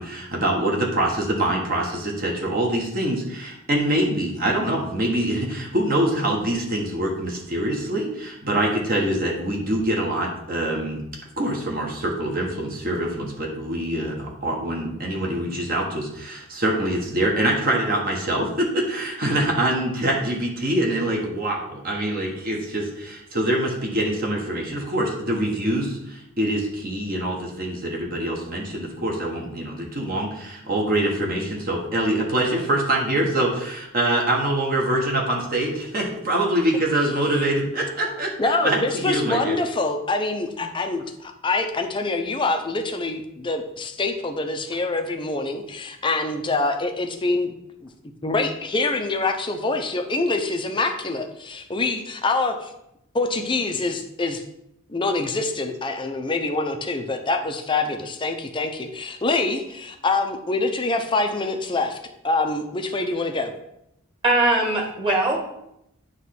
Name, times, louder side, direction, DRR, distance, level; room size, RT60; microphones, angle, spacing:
voice 1, 0.0-11.0 11.4-38.3 38.6-39.5, right 1 dB, 45° right, -1 dB, 1.4 m, -24 dB
voice 2, 38.4-47.5 47.8-47.9 48.2-52.7 53.1-54.4 54.9-62.0 62.2-63.5, left 3 dB, 25° left, 5 dB, 0.6 m, -25 dB
voice 3, 64.2-65.4, right 2 dB, 25° right, 0 dB, 1.6 m, -20 dB
9.2 x 3.2 x 5.9 m, 0.80 s
head